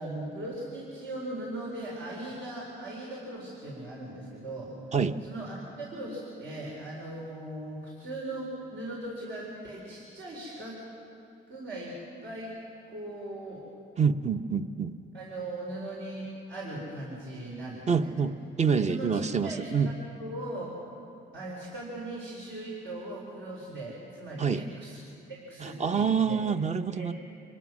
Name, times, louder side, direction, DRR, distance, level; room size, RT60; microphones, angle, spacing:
voice 1, 0.0-5.0 5.2-10.8 11.5-12.5 12.9-13.6 15.1-18.1 18.8-19.7 20.2-20.7 21.3-25.0 25.3-26.4 26.9-27.1, right 1 dB, 75° right, -4 dB, 4.5 m, -39 dB
voice 2, 14.0-15.0 17.9-19.9 24.4-24.6 25.6-27.1, right 6 dB, 35° right, 9 dB, 0.8 m, -27 dB
26.5 x 19.5 x 6.3 m, 2.7 s
cardioid pair, 90°, 20 cm